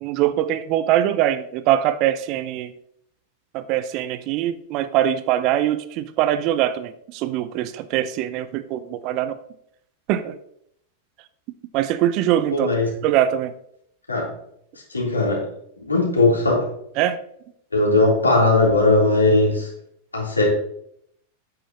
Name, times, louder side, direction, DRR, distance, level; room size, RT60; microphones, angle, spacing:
voice 1, 0.0-2.7 3.5-9.4 10.1-10.4 11.7-12.7 13.0-13.5 17.0-17.2, right 12 dB, 40° right, 13 dB, 0.7 m, -22 dB
voice 2, 12.5-12.9 14.1-14.3 14.9-15.5 15.9-16.7 17.7-19.7 20.1-20.5, left 2 dB, 80° left, -3 dB, 3.5 m, -18 dB
10.0 x 9.0 x 3.0 m, 0.71 s
figure-of-eight pair, 90°, 0 cm